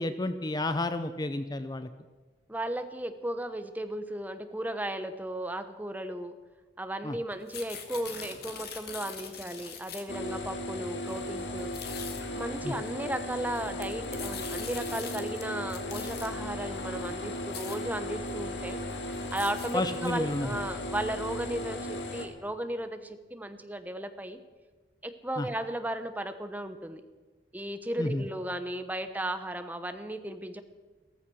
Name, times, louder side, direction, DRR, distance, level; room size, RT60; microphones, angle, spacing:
voice 1, 0.0-1.9 7.0-7.2 12.6-12.7 19.7-20.6 25.4-25.5 28.0-28.2, left 2 dB, 25° left, 11 dB, 0.6 m, -31 dB
voice 2, 2.5-6.3 6.8-11.7 12.4-18.8 19.3-24.4 25.0-27.0 27.5-30.6, right 1 dB, 10° right, 9 dB, 1.0 m, -35 dB
sound 1, 7.3-10.2 11.0-11.2 11.6-12.2 13.4-15.4 15.7-16.3 17.0-17.1 17.3-17.8 18.3-18.4 18.7-20.4, left 7 dB, 60° left, 2.0 m, -42 dB
sound 2, 10.1-22.3, left 1 dB, 85° left, 2.1 m, -36 dB
15.5 x 14.0 x 6.3 m, 1.3 s
head